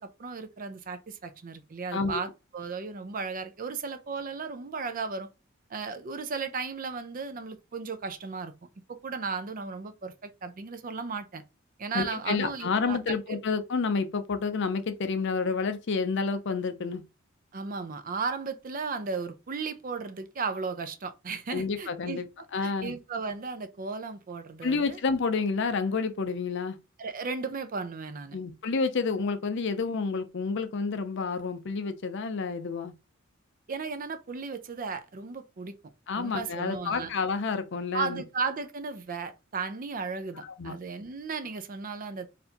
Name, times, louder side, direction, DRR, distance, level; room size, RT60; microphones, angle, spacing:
voice 1, 0.0-2.3 2.5-5.3 5.7-8.5 9.0-11.4 11.8-13.1 17.5-22.2 22.6-25.0 27.0-28.4 33.7-35.8 36.2-37.1 37.9-42.3, right 4 dB, 45° right, 0.5 m, -35 dB
voice 2, 1.9-2.3 11.9-17.0 21.5-22.3 22.5-22.9 24.6-26.8 28.3-32.9 36.1-38.2 40.4-40.8, left 4 dB, 60° left, 0.5 m, -29 dB
4.2 x 2.6 x 2.8 m
head